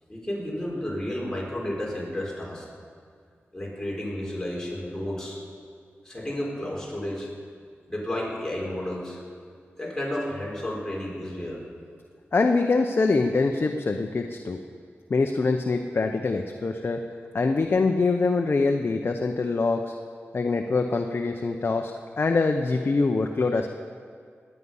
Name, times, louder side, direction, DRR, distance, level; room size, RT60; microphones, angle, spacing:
voice 1, 0.1-2.7 3.5-5.4 6.0-7.3 7.9-9.2 9.8-11.6, left 1 dB, 15° left, -4 dB, 4.2 m, -32 dB
voice 2, 12.3-14.6 15.1-17.0 17.3-19.9 20.3-21.9 22.2-23.7, left 3 dB, 55° left, 4 dB, 0.7 m, -24 dB
19.0 x 9.9 x 5.5 m, 2.1 s
wide cardioid pair, 70°, 5 cm